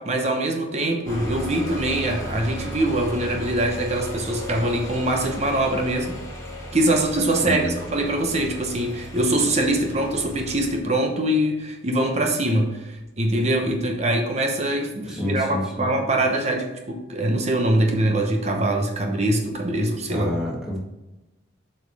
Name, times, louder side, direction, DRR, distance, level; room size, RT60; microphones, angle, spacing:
voice 1, 0.0-6.1 6.7-20.3, right 1 dB, 35° right, 3 dB, 0.9 m, -23 dB
sound 1, 1.1-10.8, equal, 15° left, 1.5 m, -36 dB
voice 2, 15.1-15.9 20.1-20.8, left 1 dB, 5° right, -4 dB, 1.8 m, -28 dB
7.9 x 5.4 x 3.5 m, 1.0 s
head